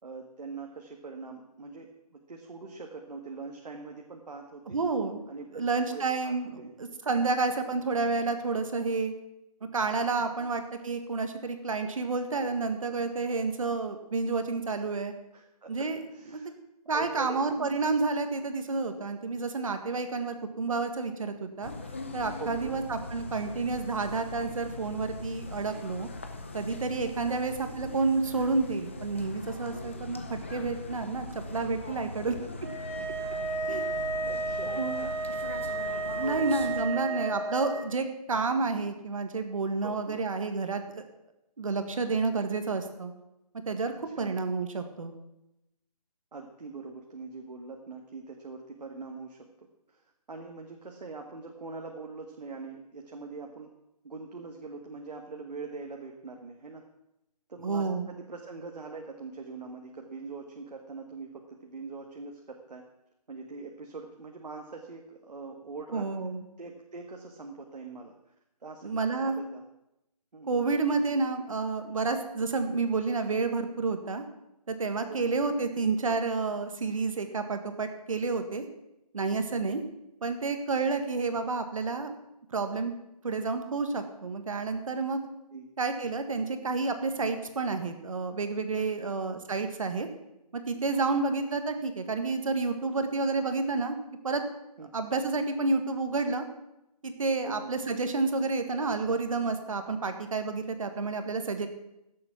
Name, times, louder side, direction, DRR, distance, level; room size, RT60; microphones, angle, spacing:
voice 1, 0.0-4.8 5.3-5.6 5.9-6.7 10.2-10.5 15.3-16.5 16.9-17.8 22.4-22.8 27.2-27.4 34.3-35.2 36.2-37.4 39.8-40.2 43.9-44.3 46.3-53.7 54.0-56.8 57.5-62.8 63.3-66.1 66.6-68.1 68.6-69.6 70.3-70.7 75.1-75.4 79.5-79.6 85.5-85.7 88.9-89.1 94.8-94.9 97.4-97.7, right 4 dB, 85° right, 2 dB, 1.8 m, -43 dB
voice 2, 4.7-5.2 5.5-9.1 9.7-15.1 15.7-16.0 16.3-16.4 16.9-21.7 22.1-26.1 26.5-32.3 33.7-33.9 34.8-35.1 36.1-41.0 41.6-43.1 43.6-45.1 57.6-58.1 65.9-66.4 68.8-69.4 70.5-74.2 74.7-78.6 79.1-79.8 80.2-82.2 82.5-82.9 83.2-85.2 85.8-90.1 90.5-94.0 94.2-94.4 94.9-96.4 97.0-101.7, right 3 dB, 55° right, 7 dB, 1.7 m, -30 dB
sound 1, 21.6-36.8, left 2 dB, 20° left, 0.6 m, -41 dB
sound 2, 32.6-37.8, right 2 dB, 20° right, 3.7 m, -33 dB
16.0 x 7.6 x 5.9 m, 0.88 s
hypercardioid pair, 175°, 21 cm